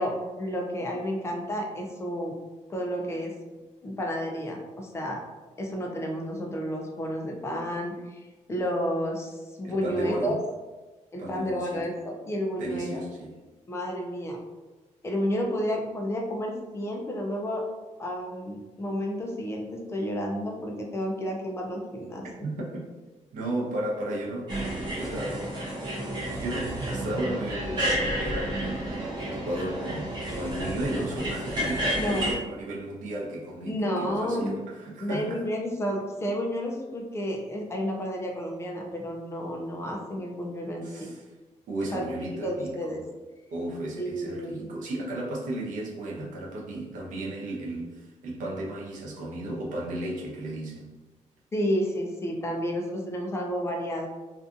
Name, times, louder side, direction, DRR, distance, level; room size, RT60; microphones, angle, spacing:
voice 1, 0.0-2.4 2.7-3.3 3.8-5.2 5.6-10.4 11.1-13.0 13.7-14.4 15.0-17.6 18.0-22.4 31.9-32.3 33.6-34.6 35.0-40.9 41.9-42.0 42.4-43.0 44.0-44.7 51.5-54.1, equal, 20° left, 0 dB, 0.4 m, -31 dB
voice 2, 9.6-10.4 11.2-11.9 12.6-13.3 22.4-22.8 23.3-25.5 26.3-35.4 40.8-41.2 41.7-43.0 43.5-50.9, right 1 dB, 80° right, -3 dB, 0.7 m, -34 dB
sound 1, 24.5-32.3, right 1 dB, 35° right, 0.7 m, -31 dB
2.6 x 2.4 x 2.4 m, 1.2 s
cardioid pair, 160°, 13 cm